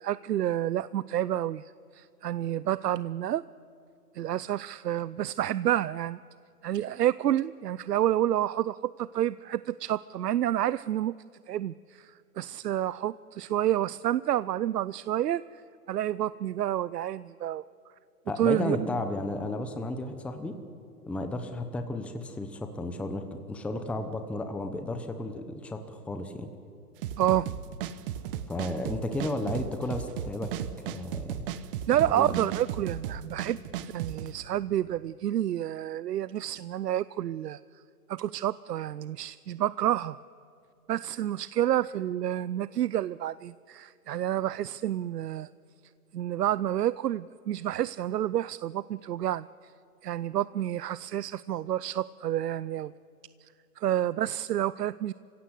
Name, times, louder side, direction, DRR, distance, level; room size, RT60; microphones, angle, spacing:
voice 1, 0.0-3.4 4.1-6.2 6.6-11.2 11.5-15.4 15.9-17.6 18.4-18.9 27.2-27.5 31.9-33.6 33.9-37.6 38.1-40.2 40.9-45.5 46.1-49.5 50.0-52.9 53.4-53.5 53.8-55.1, right 12 dB, 90° right, 18 dB, 0.6 m, -29 dB
voice 2, 18.3-20.6 21.1-26.5 28.5-30.5 30.9-31.5 32.0-32.4, left 2 dB, 5° left, 7 dB, 0.8 m, -33 dB
sound 1, 27.0-34.3, right 10 dB, 35° right, 1.0 m, -35 dB
27.5 x 16.5 x 8.2 m, 2.5 s
hypercardioid pair, 135°, 46 cm